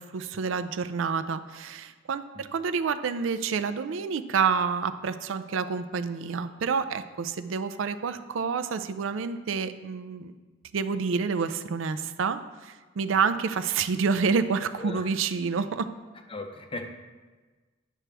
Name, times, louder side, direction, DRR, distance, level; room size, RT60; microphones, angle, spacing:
voice 1, 0.0-10.3 10.7-15.9, right 5 dB, 80° right, 11 dB, 0.4 m, -28 dB
voice 2, 14.8-15.1 16.3-16.9, left 2 dB, 25° left, 5 dB, 0.6 m, -37 dB
9.1 x 6.0 x 3.4 m, 1.3 s
head